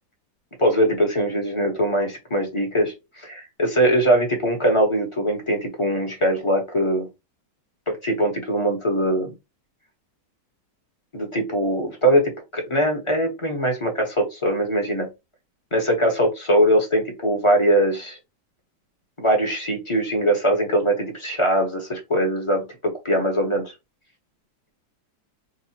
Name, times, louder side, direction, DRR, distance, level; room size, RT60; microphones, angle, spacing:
voice 1, 0.6-7.1 7.9-9.3 11.1-15.1 15.7-18.2 19.2-22.6 23.0-23.7, right 1 dB, 20° left, 1 dB, 1.2 m, -21 dB
3.9 x 2.5 x 4.4 m, 0.23 s
omnidirectional pair, 2.0 m